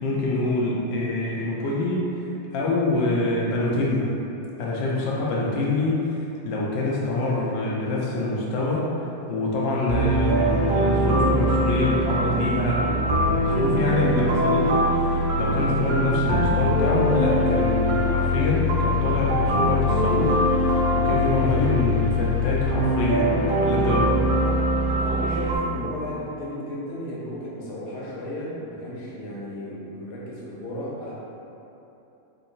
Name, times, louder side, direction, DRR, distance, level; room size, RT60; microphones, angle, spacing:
voice 1, 0.0-2.3 2.5-4.1 4.6-8.9 9.3-24.2, left 2 dB, 70° left, -4 dB, 1.1 m, -25 dB
sound 1, 9.9-25.6, equal, 75° right, 1.4 m, -22 dB
voice 2, 24.3-24.7 25.0-31.1, equal, 90° left, -6 dB, 1.7 m, -34 dB
3.7 x 2.8 x 2.5 m, 3.0 s
omnidirectional pair, 2.3 m